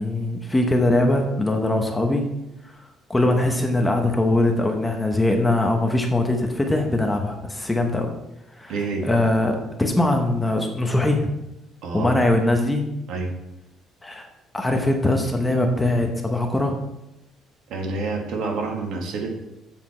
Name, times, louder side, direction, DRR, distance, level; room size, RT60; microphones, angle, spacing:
voice 1, 0.0-2.2 3.1-8.1 8.6-8.7 9.0-11.3 11.9-12.8 14.0-14.3 14.5-16.7, left 1 dB, 10° left, 3 dB, 0.9 m, -21 dB
voice 2, 8.7-9.1 11.8-12.2 13.1-13.3 17.7-19.3, right 3 dB, 65° right, 2 dB, 1.8 m, -28 dB
8.0 x 7.4 x 4.4 m, 0.90 s
cardioid pair, 170°, 0 cm